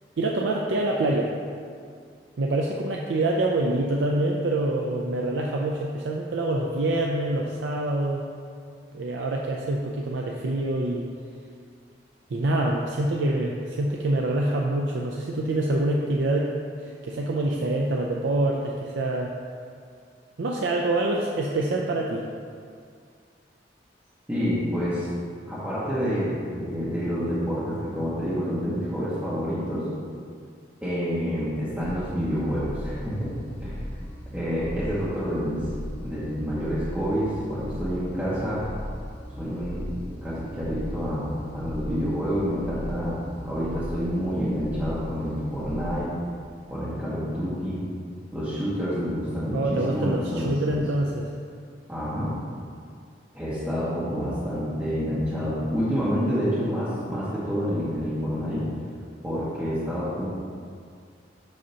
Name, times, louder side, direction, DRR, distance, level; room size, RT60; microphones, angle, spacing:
voice 1, 0.2-1.3 2.4-8.3 8.9-11.1 12.3-16.5 16.8-19.4 20.4-22.3 49.5-51.3, right 2 dB, 80° right, -1 dB, 0.5 m, -26 dB
voice 2, 24.3-25.1 25.5-29.9 30.8-33.3 33.6-33.9 34.3-35.6 36.0-38.6 39.4-39.8 40.2-43.1 43.4-46.1 46.7-47.8 48.3-50.8 51.9-52.3 53.3-58.6 59.2-60.3, equal, 10° right, -12 dB, 1.1 m, -28 dB
sound 1, 31.8-46.0, equal, 10° left, 0.7 m, -37 dB
7.9 x 2.8 x 5.4 m, 2.2 s
head